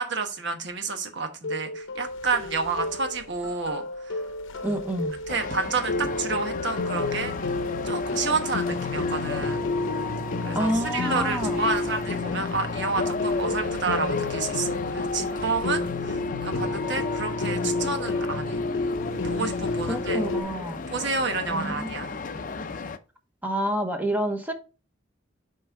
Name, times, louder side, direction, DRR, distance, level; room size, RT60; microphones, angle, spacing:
voice 1, 0.0-4.2 4.6-4.8 5.3-7.3 7.8-9.6 10.4-18.6 19.2-20.3 20.9-22.1, right 4 dB, 65° right, 1.2 m, -30 dB
sound 1, 1.4-20.4, left 3 dB, 90° left, 0.7 m, -30 dB
voice 2, 4.6-5.2 10.5-11.6 19.9-20.8 21.5-21.9 23.4-24.5, right 1 dB, 10° right, 0.9 m, -28 dB
sound 2, 5.3-23.0, left 4 dB, 45° left, 0.5 m, -34 dB
6.8 x 4.4 x 3.6 m
head